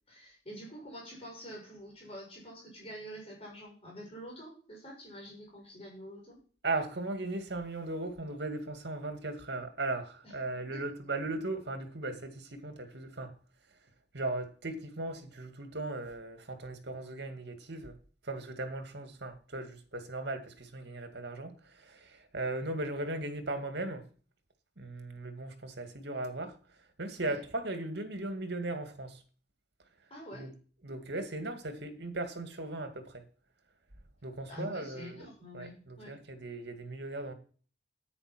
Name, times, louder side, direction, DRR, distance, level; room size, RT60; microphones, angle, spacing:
voice 1, 0.1-6.4 10.2-10.3 10.7-10.8 27.2-27.4 30.1-30.5 34.5-36.1, equal, 35° left, 6.2 m, -46 dB
voice 2, 6.6-13.3 14.1-17.9 18.2-24.0 24.8-26.5 27.0-29.2 30.3-30.5 30.8-33.2 34.2-35.3 35.5-37.3, right 2 dB, 65° right, 2.2 m, -37 dB
10.0 x 9.2 x 6.1 m
head